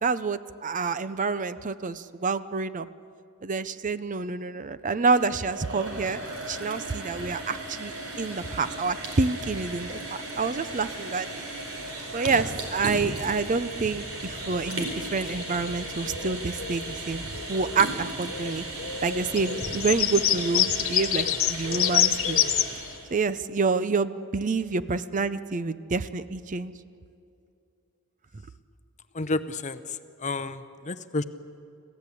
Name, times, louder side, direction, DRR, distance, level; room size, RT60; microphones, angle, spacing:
voice 1, 0.0-2.9 3.4-6.2 6.5-11.5 12.1-18.6 19.0-22.4 23.1-26.7, right 4 dB, 35° right, 14 dB, 0.6 m, -28 dB
sound 1, 4.9-23.1, right 2 dB, 65° right, 4.5 m, -36 dB
sound 2, 14.0-17.0 17.3-17.9 18.2-22.9, left 10 dB, 60° left, 0.9 m, -28 dB
voice 2, 29.1-31.2, left 3 dB, 35° left, 12 dB, 0.7 m, -31 dB
26.5 x 16.0 x 8.4 m, 2.5 s
head